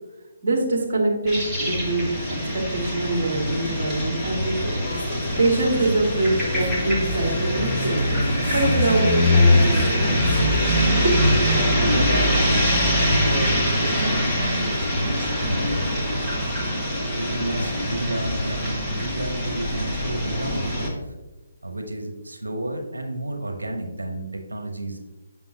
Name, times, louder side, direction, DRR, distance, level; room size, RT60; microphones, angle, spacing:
voice 1, 0.4-2.4 2.7-4.7 5.4-8.0 8.5-10.4 11.0-11.3, right 2 dB, 50° right, -1 dB, 2.0 m, -24 dB
sound 1, 1.3-20.9, left 1 dB, 5° right, 1.6 m, -23 dB
sound 2, 4.8-11.6, left 3 dB, 60° left, 0.7 m, -34 dB
voice 2, 11.9-16.6 17.2-21.1 21.6-25.0, right 1 dB, 90° right, 4 dB, 0.9 m, -31 dB
7.0 x 6.1 x 2.8 m, 1.1 s
figure-of-eight pair, 145°, 0 cm